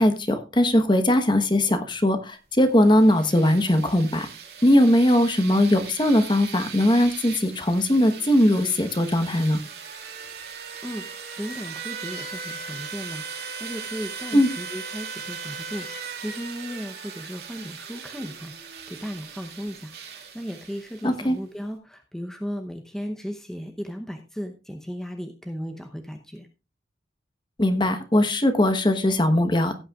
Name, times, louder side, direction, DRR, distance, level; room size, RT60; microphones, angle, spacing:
voice 1, 0.0-4.3 4.6-9.6 14.3-14.5 21.0-21.4 27.6-29.8, left 1 dB, 25° left, 8 dB, 1.1 m, -20 dB
sound 1, 2.7-21.3, right 6 dB, 60° right, 2.4 m, -39 dB
voice 2, 11.4-26.5, equal, 5° left, 4 dB, 0.8 m, -36 dB
16.5 x 8.6 x 2.4 m, 0.30 s
head